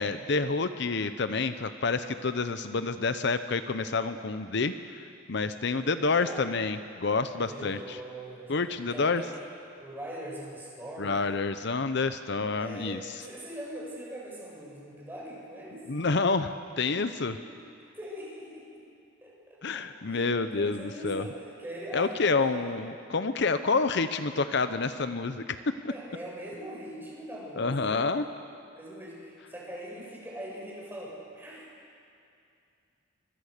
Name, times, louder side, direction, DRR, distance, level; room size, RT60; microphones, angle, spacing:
voice 1, 0.0-5.0 5.3-8.0 8.5-9.2 11.0-13.1 15.9-17.4 19.6-21.2 21.9-25.7 27.6-28.2, left 4 dB, 60° left, 10 dB, 0.8 m, -28 dB
voice 2, 6.0-6.5 7.4-8.5 8.9-11.4 12.5-15.9 17.4-17.6 17.9-18.8 19.2-22.7 25.9-28.1 28.7-31.7, right 1 dB, 10° right, -4 dB, 7.2 m, -42 dB
26.0 x 24.5 x 6.7 m, 2.5 s
head